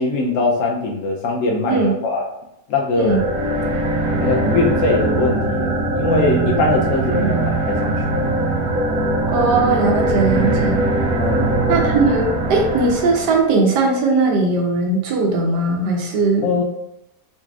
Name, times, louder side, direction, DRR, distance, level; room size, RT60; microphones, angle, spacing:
voice 1, 0.0-2.3 2.7-3.2 4.2-5.7 5.9-8.2 11.2-11.6 16.4-16.6, left 3 dB, 65° left, 0 dB, 0.8 m, -21 dB
sound 1, 3.0-13.5, right 2 dB, 70° right, 0.9 m, -21 dB
voice 2, 9.3-10.8 11.7-16.5, right 3 dB, 85° right, 0 dB, 1.4 m, -19 dB
3.8 x 3.1 x 2.4 m, 0.84 s
omnidirectional pair, 1.7 m